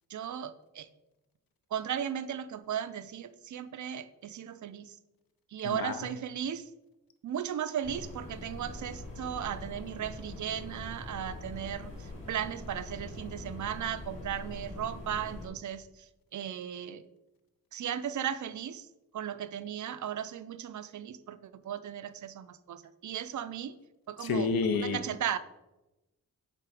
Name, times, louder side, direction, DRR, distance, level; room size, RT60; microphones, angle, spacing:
voice 1, 0.1-0.9 1.7-5.0 5.5-6.7 7.2-16.1 16.3-17.0 17.7-18.9 19.1-23.7 24.1-24.5 24.7-25.4, right 9 dB, 55° right, 13 dB, 0.5 m, -36 dB
voice 2, 5.6-6.0 24.2-25.0, left 4 dB, 70° left, 9 dB, 0.7 m, -29 dB
sound 1, 7.8-15.5, left 1 dB, 35° left, 2.5 m, -43 dB
7.6 x 4.3 x 4.9 m, 1.0 s
wide cardioid pair, 150°, 36 cm